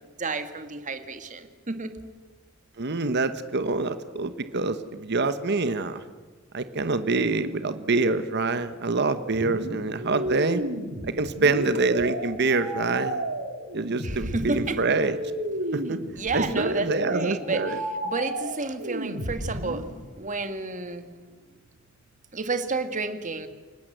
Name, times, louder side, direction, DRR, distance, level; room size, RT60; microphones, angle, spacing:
voice 1, 0.2-2.0 14.0-14.8 16.1-17.6 18.0-19.9 20.2-21.1 22.3-23.5, right 3 dB, 40° right, 9 dB, 1.7 m, -31 dB
voice 2, 2.8-6.0 6.5-10.6 11.2-13.3 13.7-15.2 15.7-16.0 16.3-17.8, right 3 dB, 55° right, 11 dB, 1.1 m, -26 dB
sound 1, 9.3-19.9, right 1 dB, 90° right, 3.4 m, -32 dB
29.5 x 18.0 x 8.0 m, 1.4 s
head